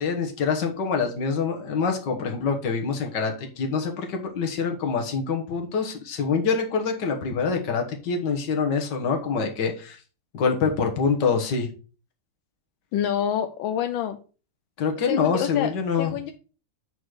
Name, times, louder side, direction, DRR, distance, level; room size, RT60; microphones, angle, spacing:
voice 1, 0.0-10.0 10.3-11.7 14.8-16.1, left 5 dB, 65° left, 4 dB, 1.8 m, -25 dB
voice 2, 12.9-14.2 15.1-15.7 16.0-16.3, left 9 dB, 85° left, 6 dB, 1.4 m, -26 dB
7.8 x 4.1 x 4.8 m, 0.37 s
omnidirectional pair, 2.1 m